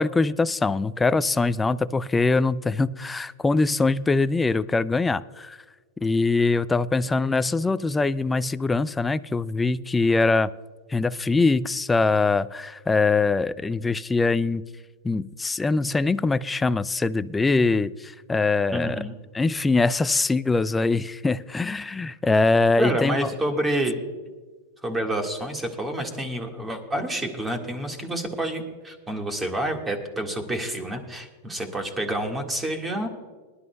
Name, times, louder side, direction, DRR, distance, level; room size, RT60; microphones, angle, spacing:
voice 1, 0.0-5.6 6.0-10.5 10.9-14.6 15.0-19.0 19.3-23.3, left 3 dB, 10° left, 15 dB, 0.4 m, -23 dB
voice 2, 18.7-19.1 22.8-24.0 24.8-33.1, right 1 dB, 15° right, 4 dB, 1.8 m, -28 dB
21.5 x 11.5 x 2.3 m, 1.4 s
supercardioid pair, 130°, 0 cm